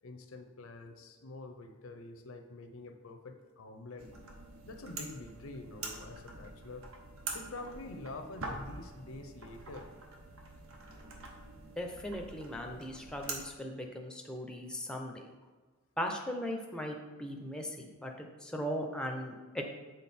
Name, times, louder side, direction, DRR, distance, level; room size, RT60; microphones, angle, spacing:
voice 1, 0.0-4.1 4.6-6.9 7.3-9.9, left 2 dB, 75° left, 6 dB, 0.7 m, -46 dB
sound 1, 4.0-13.4, right 3 dB, 70° right, 1.0 m, -45 dB
voice 2, 11.8-15.3 16.0-19.6, equal, 5° left, 2 dB, 0.6 m, -38 dB
7.3 x 3.9 x 4.3 m, 1.4 s
head